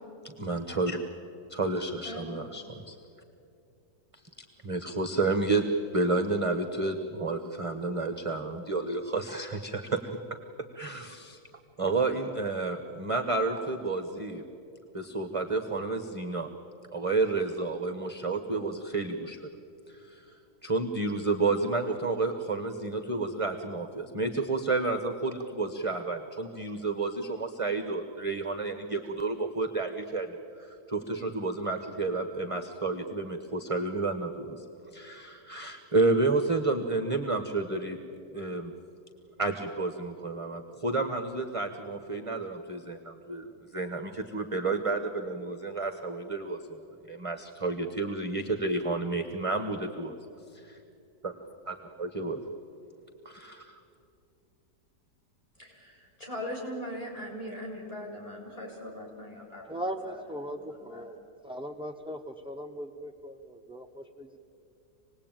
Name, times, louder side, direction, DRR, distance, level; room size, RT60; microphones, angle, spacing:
voice 1, 0.2-1.0 1.5-3.0 4.6-5.6 5.9-10.0 10.7-11.4 11.8-14.4 14.9-16.5 16.9-19.5 19.9-20.4 20.6-34.6 34.9-38.0 38.3-38.7 39.4-46.8 47.1-50.2 51.2-51.3 51.7-52.4 53.2-53.8, right 3 dB, 20° right, 5 dB, 1.0 m, -30 dB
voice 2, 2.0-2.5 55.6-59.7 60.1-60.2 60.8-61.0, equal, 20° left, -2 dB, 6.4 m, -40 dB
voice 3, 59.7-61.2 61.4-64.4, equal, 5° right, 5 dB, 0.5 m, -39 dB
26.5 x 19.5 x 9.0 m, 2.6 s
omnidirectional pair, 1.8 m